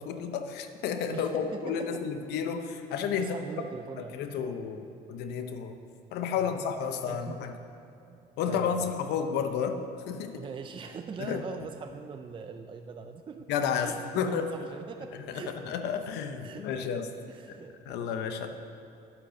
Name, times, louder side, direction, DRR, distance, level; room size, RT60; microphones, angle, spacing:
voice 1, 0.0-3.3 4.1-5.8 6.1-7.5 8.4-9.8 10.1-10.4 11.2-11.4 13.5-14.5 15.3-17.1 17.9-18.5, left 7 dB, 85° left, 7 dB, 0.8 m, -31 dB
voice 2, 1.1-2.0 3.2-4.5 6.3-6.6 7.1-7.5 8.1-8.9 10.3-13.5 13.8-15.6 16.4-17.0 17.3-18.4, right 5 dB, 30° right, 6 dB, 0.4 m, -42 dB
9.0 x 8.1 x 6.4 m, 2.6 s
cardioid pair, 110°, 17 cm